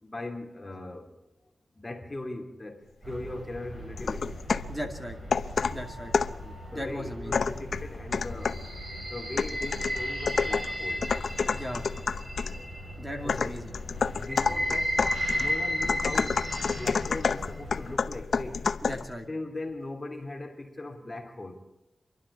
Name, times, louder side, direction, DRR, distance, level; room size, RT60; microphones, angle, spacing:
voice 1, 0.0-1.2 1.7-4.4 6.4-8.6 8.9-11.1 13.2-13.5 14.2-15.0 15.3-18.7 19.3-21.6, left 2 dB, 20° left, 2.5 m, -39 dB
sound 1, 3.0-18.0, equal, 30° right, 6.8 m, -35 dB
sound 2, 4.0-4.8 5.3-6.4 7.3-8.7 9.4-12.6 13.3-19.1, left 5 dB, 70° left, 0.7 m, -29 dB
voice 2, 4.7-5.2 5.7-6.1 6.7-7.4 11.5-11.9 13.0-13.7 18.8-19.3, equal, 10° right, 2.4 m, -37 dB
28.5 x 12.0 x 8.2 m
wide cardioid pair, 155°, 0 cm